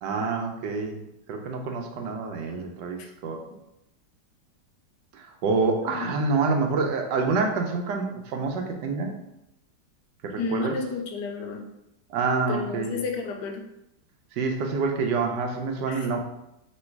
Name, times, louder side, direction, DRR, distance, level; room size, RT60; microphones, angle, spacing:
voice 1, 0.0-1.0 1.3-3.4 5.1-9.1 10.2-10.7 12.1-13.0 14.4-16.2, right 4 dB, 80° right, 3 dB, 1.3 m, -27 dB
voice 2, 10.4-11.7 12.5-13.7 15.9-16.1, left 4 dB, 80° left, 3 dB, 1.2 m, -32 dB
3.1 x 3.1 x 4.4 m, 0.88 s
omnidirectional pair, 1.9 m